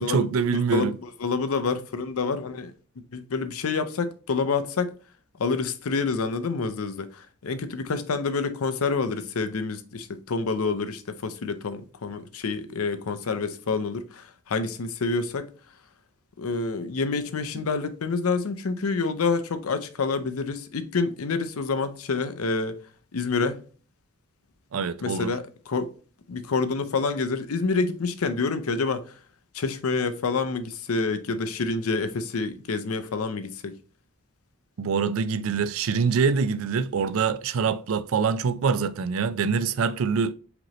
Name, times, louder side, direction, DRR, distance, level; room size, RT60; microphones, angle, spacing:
voice 1, 0.0-1.0 24.7-25.3 34.8-40.3, right 5 dB, 70° right, 0.4 m, -25 dB
voice 2, 0.7-2.7 3.1-4.9 5.4-15.5 16.4-22.8 23.1-23.6 25.0-25.9 26.3-29.0 29.5-33.7, left 4 dB, 85° left, 0.6 m, -28 dB
5.0 x 3.0 x 3.0 m
head